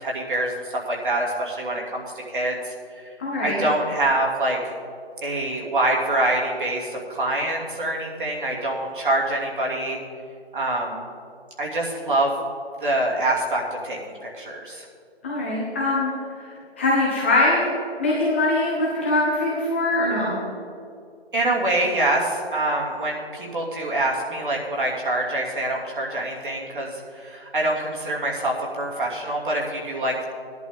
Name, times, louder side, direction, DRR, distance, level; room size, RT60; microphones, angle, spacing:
voice 1, 0.0-2.5 3.4-4.7 5.2-10.0 10.5-11.0 11.6-12.4 12.8-14.8 21.3-30.3, right 1 dB, 50° right, -2 dB, 2.7 m, -25 dB
voice 2, 3.2-3.6 15.2-16.1 16.4-17.6 18.0-20.4, left 2 dB, 10° left, -7 dB, 1.0 m, -22 dB
16.5 x 11.0 x 3.7 m, 2.3 s
hypercardioid pair, 170°, 32 cm